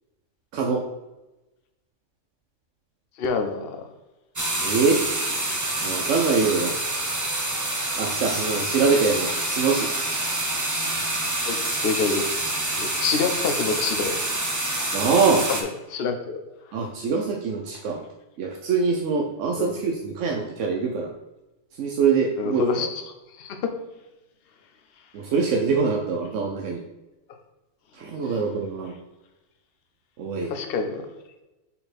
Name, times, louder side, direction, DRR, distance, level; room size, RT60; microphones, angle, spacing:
voice 1, 0.5-0.8 4.6-5.0 5.8-6.7 8.0-9.9 14.9-15.5 16.7-18.0 18.4-21.1 21.7-22.9 25.1-26.8 27.9-28.9 30.2-30.5, right 5 dB, 85° right, 0 dB, 1.0 m, -24 dB
voice 2, 3.2-3.8 11.4-12.4 12.7-14.2 15.9-16.4 19.6-19.8 22.4-22.9 23.4-23.7 28.2-28.3 30.5-31.0, left 5 dB, 55° left, 6 dB, 0.9 m, -27 dB
sound 1, 4.4-15.6, right 1 dB, 20° right, 0.7 m, -27 dB
5.5 x 4.3 x 4.2 m, 1.0 s
omnidirectional pair, 1.2 m